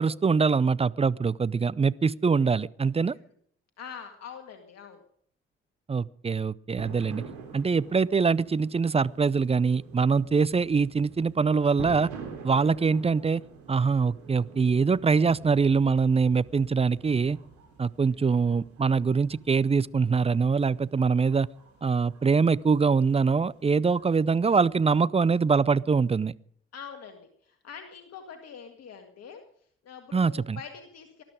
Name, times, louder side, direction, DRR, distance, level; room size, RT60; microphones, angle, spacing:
voice 1, 0.0-3.1 5.9-7.2 7.5-12.1 12.4-13.4 13.7-17.4 17.8-21.5 21.8-26.3 30.1-30.6, right 5 dB, 20° right, 0.5 m, -23 dB
voice 2, 3.8-5.0 16.6-16.8 18.0-18.3 26.7-29.4 29.8-31.2, left 7 dB, 60° left, 1.9 m, -44 dB
sound 1, 6.8-24.8, right 5 dB, 75° right, 3.9 m, -47 dB
20.0 x 12.0 x 5.0 m
hypercardioid pair, 40°, 29 cm